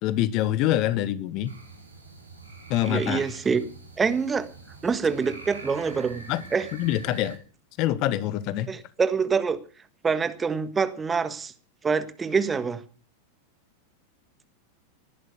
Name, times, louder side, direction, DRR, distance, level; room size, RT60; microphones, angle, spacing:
voice 1, 0.0-1.5 2.7-3.2 6.3-6.4 6.7-7.4 7.8-8.7, left 13 dB, 40° left, 1.2 m, -25 dB
sound 1, 1.4-7.4, right 3 dB, 85° right, 5.0 m, -44 dB
voice 2, 2.8-3.6 4.0-4.5 4.8-6.7 8.7-9.6 10.0-11.5 11.8-12.8, right 5 dB, 15° right, 1.5 m, -25 dB
19.5 x 11.0 x 6.5 m
figure-of-eight pair, 90°, 0 cm